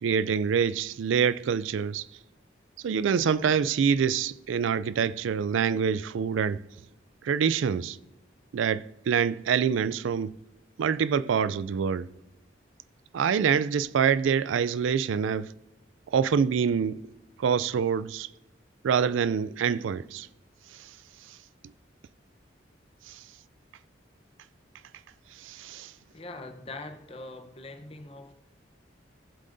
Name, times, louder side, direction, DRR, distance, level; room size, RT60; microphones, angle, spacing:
voice 1, 0.0-2.1 2.8-6.6 7.2-8.0 8.5-10.4 10.8-12.1 13.1-15.5 16.1-17.1 17.4-18.3 18.8-20.3 20.7-21.0 21.2-21.4 23.0-23.3 25.3-25.9, right 7 dB, 80° right, 0.3 m, -26 dB
voice 2, 26.1-28.3, left 2 dB, 30° left, 0.8 m, -42 dB
18.0 x 7.5 x 2.6 m
head